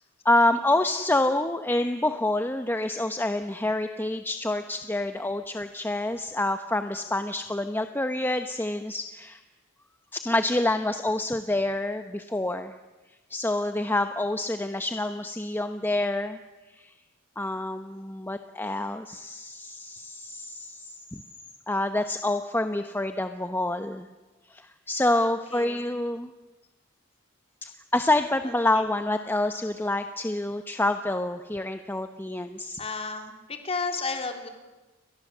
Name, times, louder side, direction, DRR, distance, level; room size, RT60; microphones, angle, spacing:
voice 1, 0.2-9.4 10.1-12.7 13.3-16.4 16.7-16.9 17.4-21.2 21.7-24.1 24.5-26.3 27.6-32.8, left 1 dB, 10° left, 8 dB, 0.9 m, -27 dB
voice 2, 25.1-26.0 28.4-28.8 32.8-34.5, left 4 dB, 30° left, 4 dB, 3.5 m, -34 dB
29.5 x 24.0 x 7.4 m, 1.1 s
head